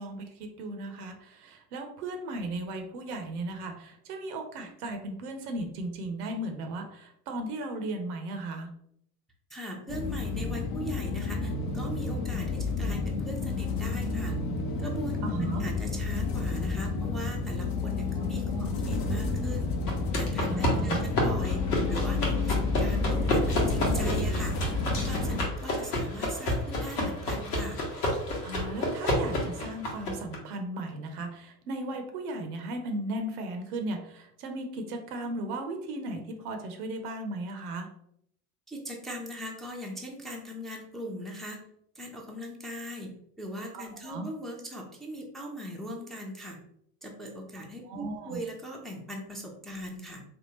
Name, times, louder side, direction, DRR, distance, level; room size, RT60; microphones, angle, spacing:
voice 1, 0.0-8.7 15.2-15.6 18.1-18.7 20.5-21.1 21.4-21.5 28.4-37.9 43.7-44.3 47.8-48.4, right 2 dB, 70° right, 5 dB, 0.7 m, -36 dB
voice 2, 9.5-14.3 14.8-19.7 20.2-21.6 21.9-24.6 25.1-27.8 38.7-41.6 41.9-43.1 43.4-46.6 47.0-50.2, equal, ahead, -1 dB, 0.6 m, -40 dB
sound 1, 9.9-25.5, left 3 dB, 50° left, 0.8 m, -30 dB
sound 2, 19.9-30.4, left 1 dB, 80° left, 1.1 m, -30 dB
3.5 x 2.4 x 2.9 m, 0.72 s
hypercardioid pair, 70°, 47 cm